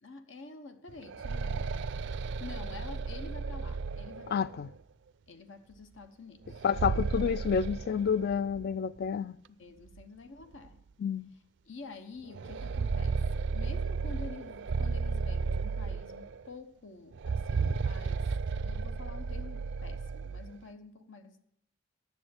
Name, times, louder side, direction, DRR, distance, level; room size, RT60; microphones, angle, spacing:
voice 1, 0.0-1.7 2.4-4.5 5.3-6.6 9.6-10.8 11.7-18.3 18.5-21.4, left 4 dB, 85° left, 1.0 m, -48 dB
sound 1, 0.9-4.7 6.5-8.7 9.0-9.1 10.0-10.1 10.5-10.7 12.3-16.5 17.1-20.5, right 4 dB, 65° right, 0.4 m, -34 dB
voice 2, 4.3-4.7 6.6-9.4 11.0-11.3, left 7 dB, 55° left, 0.3 m, -29 dB
10.0 x 6.9 x 7.8 m
head